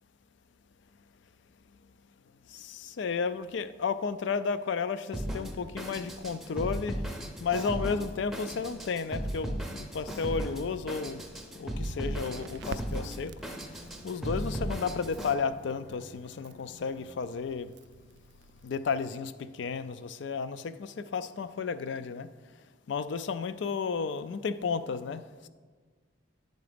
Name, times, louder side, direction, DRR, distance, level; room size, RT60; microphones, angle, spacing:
voice 1, 2.5-7.0 7.4-11.2 11.5-13.3 14.0-17.7 18.6-22.3 22.9-25.5, left 5 dB, 70° left, 13 dB, 0.4 m, -33 dB
Drum kit, 5.1-15.3, equal, ahead, 0.5 m, -36 dB
Crackle, 11.9-18.6, right 4 dB, 65° right, 0.3 m, -49 dB
Bowed string instrument, 13.3-17.6, equal, 85° left, 2.3 m, -55 dB
10.5 x 4.0 x 5.0 m, 1.5 s
head